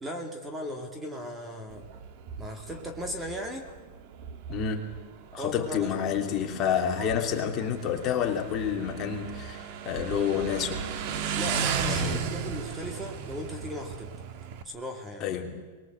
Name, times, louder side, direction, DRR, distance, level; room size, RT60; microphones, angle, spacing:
voice 1, 0.0-1.9 2.4-3.7 5.4-6.0 11.3-14.1 14.6-15.3, equal, 10° right, 4 dB, 2.4 m, -37 dB
Motorcycle, 1.7-14.6, right 6 dB, 50° right, 1.9 m, -35 dB
voice 2, 4.5-4.9 5.3-10.8 11.9-12.2 15.2-15.6, left 8 dB, 30° left, 2 dB, 3.0 m, -29 dB
23.5 x 21.5 x 8.0 m, 1.4 s
supercardioid pair, 150°, 0 cm